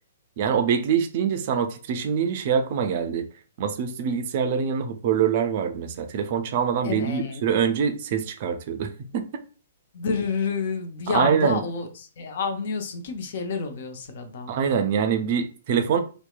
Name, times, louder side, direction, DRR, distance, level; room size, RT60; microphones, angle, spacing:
voice 1, 0.4-3.2 3.6-9.3 11.1-11.6 14.5-16.0, right 7 dB, 45° right, 7 dB, 0.4 m, -24 dB
voice 2, 6.8-7.4 9.9-14.6, left 4 dB, 50° left, 5 dB, 0.5 m, -29 dB
2.8 x 2.1 x 2.2 m, 0.35 s
figure-of-eight pair, 115°, 0 cm